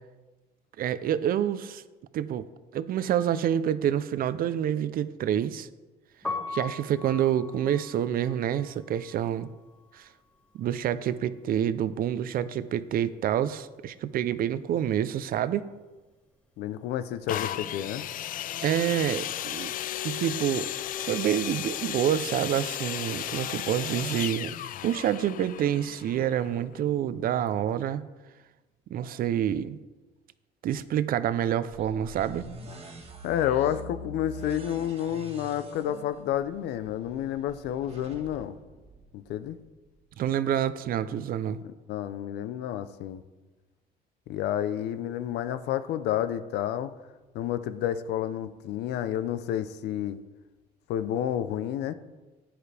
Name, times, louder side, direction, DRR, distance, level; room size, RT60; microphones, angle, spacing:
voice 1, 0.8-1.8 2.1-2.5 2.7-5.7 6.5-9.5 9.9-10.1 10.6-15.6 18.6-19.7 20.0-20.7 21.0-24.5 24.8-28.1 28.9-29.8 30.6-32.5 40.2-41.6, right 10 dB, 60° right, 14 dB, 0.7 m, -27 dB
Piano, 6.1-12.1 12.3-13.9 14.2-20.6, left 3 dB, 10° left, 2.9 m, -42 dB
voice 2, 16.6-18.0 33.2-38.5 39.1-39.6 41.9-43.2 44.3-46.9 47.3-50.2 50.9-51.9, left 11 dB, 80° left, 13 dB, 0.7 m, -30 dB
sound 1, 17.3-27.0 27.7-27.8, left 12 dB, 55° left, 0.4 m, -35 dB
sound 2, 31.7-39.6, equal, 35° right, 1.7 m, -45 dB
15.0 x 10.5 x 3.5 m, 1.2 s
cardioid pair, 110°, 17 cm